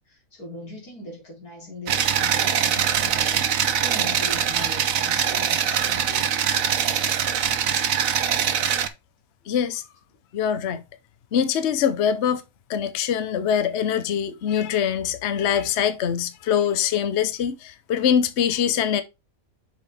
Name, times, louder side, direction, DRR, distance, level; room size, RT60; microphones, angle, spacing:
voice 1, 0.0-6.3, left 2 dB, 75° left, 3.9 m, -40 dB
sound 1, 1.9-8.9, right 8 dB, 65° right, 1.2 m, -23 dB
voice 2, 9.5-9.8 10.3-10.8 11.3-12.4 12.7-19.0, left 8 dB, 55° left, 1.0 m, -23 dB
6.9 x 5.1 x 3.5 m
omnidirectional pair, 1.6 m